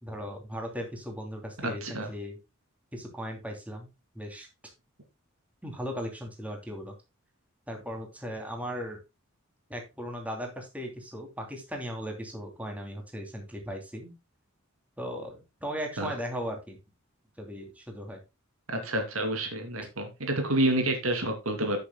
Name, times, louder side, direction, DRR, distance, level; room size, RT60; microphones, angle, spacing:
voice 1, 0.0-2.4 2.9-3.9 4.1-4.5 5.6-6.9 7.7-9.0 9.7-14.1 15.0-16.8 17.4-18.2 19.8-19.9, equal, 5° right, 2 dB, 2.9 m, -37 dB
voice 2, 1.6-2.1 16.0-16.1 18.7-21.8, right 1 dB, 75° right, 4 dB, 2.8 m, -29 dB
14.5 x 6.9 x 2.2 m, 0.25 s
head